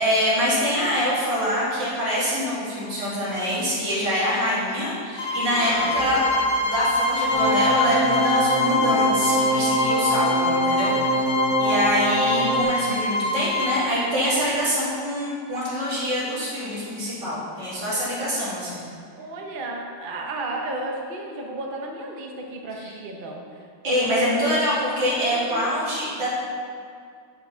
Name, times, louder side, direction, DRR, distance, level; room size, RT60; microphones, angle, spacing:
voice 1, 0.0-6.2 6.6-11.3 11.6-18.8 23.8-26.3, equal, 90° right, -8 dB, 3.3 m, -25 dB
sound 1, 5.1-13.8, left 2 dB, 75° left, 1.8 m, -25 dB
voice 2, 5.5-6.0 19.2-24.3 25.3-25.7, right 2 dB, 35° right, 1 dB, 0.9 m, -34 dB
sound 2, 5.6-8.1, right 1 dB, 65° right, 2.4 m, -37 dB
sound 3, 7.3-12.6, equal, 10° right, 1.8 m, -23 dB
9.3 x 5.7 x 5.7 m, 2.2 s
omnidirectional pair, 1.8 m